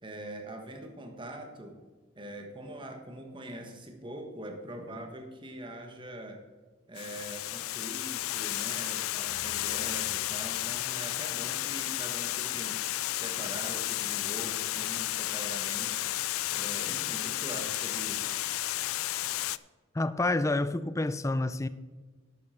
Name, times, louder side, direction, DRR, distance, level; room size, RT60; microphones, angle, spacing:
voice 1, 0.0-1.8 2.2-6.4 6.9-12.9 13.1-16.0 16.5-18.4, right 1 dB, 25° right, 1.4 m, -43 dB
Water, 7.0-19.6, left 15 dB, 90° left, 0.4 m, -33 dB
sound 1, 9.3-12.4, right 1 dB, 75° right, 1.2 m, -57 dB
voice 2, 19.9-21.7, left 2 dB, 15° left, 0.3 m, -28 dB
11.5 x 8.4 x 4.3 m
head